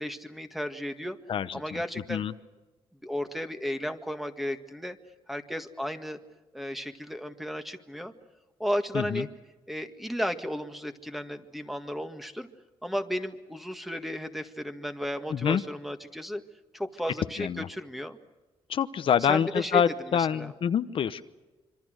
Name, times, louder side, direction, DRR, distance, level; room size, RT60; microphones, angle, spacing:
voice 1, 0.0-1.2 1.5-2.2 3.0-5.0 5.3-6.2 6.5-8.1 8.6-9.3 9.7-12.5 12.8-16.4 16.7-18.2 19.3-19.8 20.1-20.5, equal, ahead, 7 dB, 1.8 m, -34 dB
voice 2, 1.3-1.8 2.1-2.3 8.9-9.2 15.3-15.6 17.4-17.7 18.7-21.2, left 8 dB, 60° left, 10 dB, 1.0 m, -26 dB
26.5 x 25.0 x 6.5 m, 1.2 s
cardioid pair, 120°, 10 cm